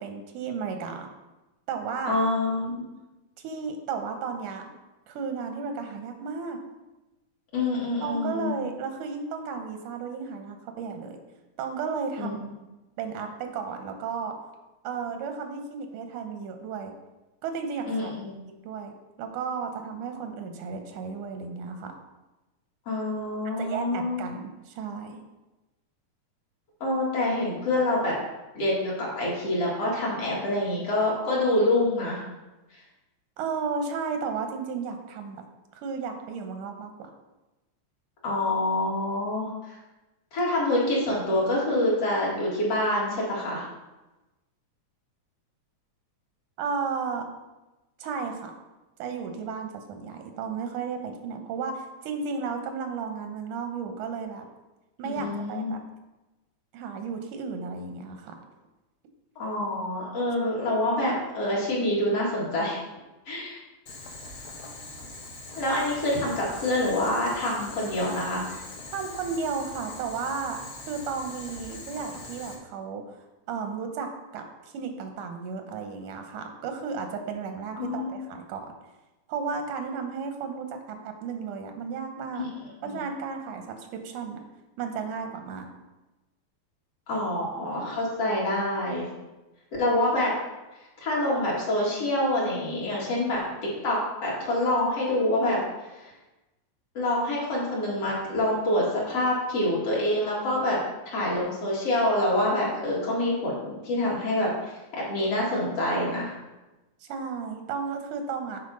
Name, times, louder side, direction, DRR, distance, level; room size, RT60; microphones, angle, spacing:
voice 1, 0.0-1.1 1.7-2.2 3.4-4.7 5.1-6.6 8.0-11.2 11.6-12.4 13.0-14.4 14.8-16.9 17.4-18.1 18.5-21.9 23.6-25.2 33.4-35.4 35.7-37.1 46.6-47.3 48.0-48.5 49.0-54.5 55.0-55.8 56.7-58.4 68.9-70.6 70.9-73.2 73.5-78.7 79.3-82.5 82.8-84.5 84.8-85.7 107.1-108.6, right 5 dB, 85° right, 5 dB, 2.4 m, -33 dB
voice 2, 2.1-2.8 7.5-8.5 12.2-12.4 17.9-18.3 22.9-24.2 26.8-28.1 28.6-32.2 38.2-39.5 40.3-43.7 55.2-55.7 59.4-62.8 63.3-63.6 65.6-68.4 77.8-78.1 82.4-82.5 82.8-82.9 87.1-89.1 89.8-90.3 91.0-95.6 96.0-96.1 96.9-100.8 101.1-106.3, left 1 dB, 55° left, -5 dB, 2.7 m, -26 dB
Boiling, 63.9-72.5, left 2 dB, 70° left, 0.9 m, -42 dB
8.0 x 4.1 x 5.4 m, 1.1 s
omnidirectional pair, 3.5 m